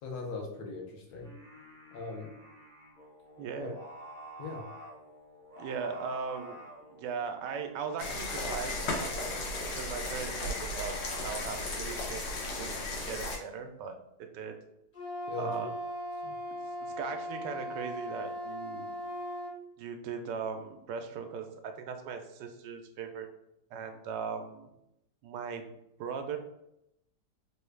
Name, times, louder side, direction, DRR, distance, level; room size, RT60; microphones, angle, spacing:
voice 1, 0.0-1.3 1.9-2.3 3.6-3.7 4.4-4.6 15.3-15.7 16.2-16.3, left 3 dB, 70° left, 1 dB, 1.2 m, -39 dB
Singing, 1.0-11.5, right 1 dB, 5° left, 0.3 m, -50 dB
voice 2, 3.4-3.8 5.6-6.6 6.9-9.4 9.8-12.3 12.6-12.8 13.0-14.6 15.4-15.7 16.8-18.9 19.8-23.3 23.7-24.7 25.2-25.7 26.0-26.4, right 6 dB, 80° right, 6 dB, 1.2 m, -39 dB
sound 1, 8.0-13.4, left 2 dB, 90° left, 1.5 m, -35 dB
Wind instrument woodwind instrument, 14.9-19.6, equal, 25° left, 0.7 m, -38 dB
3.5 x 2.3 x 3.2 m, 0.82 s
omnidirectional pair, 1.9 m